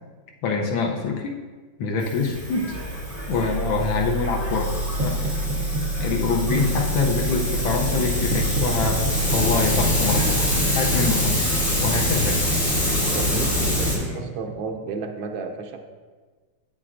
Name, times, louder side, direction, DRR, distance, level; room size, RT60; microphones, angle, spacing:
voice 1, 0.4-1.4 1.8-2.7 3.3-4.7 5.0-5.3 6.0-11.4 11.8-12.5, left 4 dB, 80° left, 2 dB, 1.4 m, -25 dB
Hiss, 2.0-14.0, left 1 dB, 30° left, 1.9 m, -26 dB
sound 1, 2.3-14.1, right 1 dB, 10° right, 1.9 m, -37 dB
sound 2, 3.1-15.0, right 1 dB, 65° right, 1.4 m, -29 dB
voice 2, 13.1-15.8, right 5 dB, 80° right, 3 dB, 1.5 m, -32 dB
8.9 x 7.2 x 2.5 m, 1.4 s
omnidirectional pair, 2.1 m